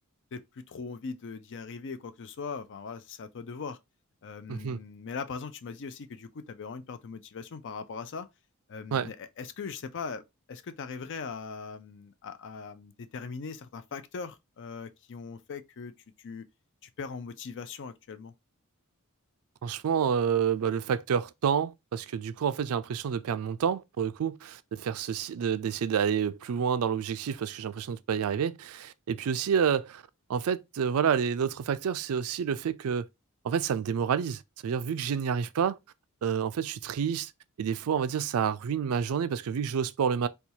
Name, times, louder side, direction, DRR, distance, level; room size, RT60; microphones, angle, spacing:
voice 1, 0.3-3.8 4.2-8.3 8.7-15.9 16.2-16.5 16.8-18.3, left 5 dB, 55° left, 0.5 m, -40 dB
voice 2, 19.6-30.0 30.3-33.0 33.4-35.8 36.2-37.3 37.6-40.3, right 7 dB, 70° right, 0.4 m, -29 dB
4.3 x 2.3 x 2.7 m
head